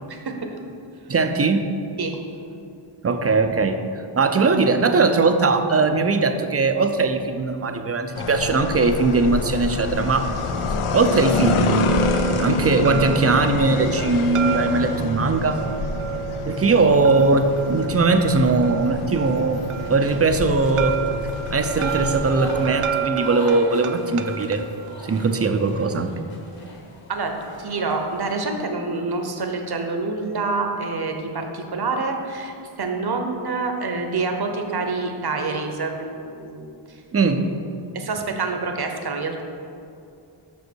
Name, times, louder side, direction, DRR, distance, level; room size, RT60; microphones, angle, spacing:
voice 1, 1.1-1.7 3.0-10.3 10.9-11.9 12.4-15.6 16.5-21.0 21.5-24.6 25.0-26.1 37.1-37.5, right 3 dB, 30° right, 7 dB, 0.5 m, -20 dB
sound 1, 8.1-22.9, left 3 dB, 75° left, 0.6 m, -27 dB
sound 2, 11.9-25.8, right 9 dB, 80° right, 0.6 m, -31 dB
sound 3, 16.7-28.5, left 1 dB, 45° left, 1.4 m, -41 dB
voice 2, 27.6-36.7 37.9-39.4, right 3 dB, 50° right, 4 dB, 0.9 m, -27 dB
6.2 x 5.3 x 6.2 m, 2.5 s
wide cardioid pair, 95°, 50 cm